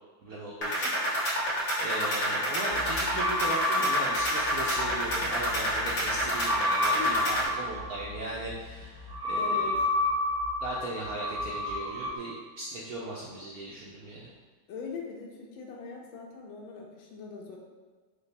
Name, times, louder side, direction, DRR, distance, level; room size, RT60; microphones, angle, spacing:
voice 1, 0.2-9.8 10.6-14.3, right 2 dB, 70° right, -4 dB, 0.9 m, -38 dB
sound 1, 0.6-7.5, equal, 50° left, 1.5 m, -29 dB
sound 2, 2.7-12.2, left 1 dB, 30° left, 1.3 m, -31 dB
voice 2, 6.9-7.4 9.3-9.8 14.7-17.6, left 4 dB, 85° left, -1 dB, 1.4 m, -41 dB
5.0 x 2.2 x 4.0 m, 1.5 s
omnidirectional pair, 2.1 m